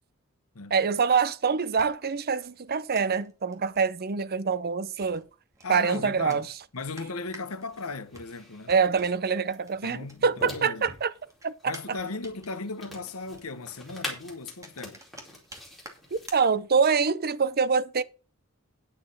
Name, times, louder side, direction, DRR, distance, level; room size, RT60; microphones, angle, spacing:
voice 1, 0.7-5.3 5.7-6.5 8.7-11.1 11.4-11.7 16.1-18.0, right 5 dB, 45° right, 0.7 m, -25 dB
sound 1, 1.4-10.5 10.8-17.1, right 1 dB, 15° right, 2.4 m, -51 dB
voice 2, 5.6-6.4 6.7-8.7 9.8-10.9 11.6-15.0, left 3 dB, 80° left, 1.2 m, -37 dB
sound 2, 7.5-16.3, left 1 dB, ahead, 4.2 m, -45 dB
10.0 x 7.6 x 5.5 m
head